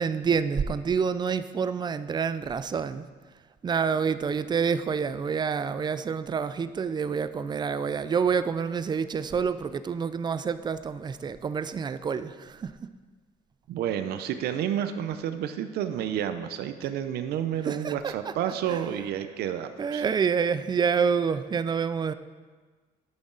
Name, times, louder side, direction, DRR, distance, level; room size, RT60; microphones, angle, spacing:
voice 1, 0.0-3.0 3.6-12.8 17.6-18.3 18.7-18.8 19.8-22.1, right 6 dB, 25° right, 13 dB, 0.4 m, -28 dB
voice 2, 13.7-20.0, right 10 dB, 75° right, 9 dB, 0.6 m, -30 dB
12.0 x 6.1 x 3.9 m, 1.4 s
cardioid pair, 110°, 17 cm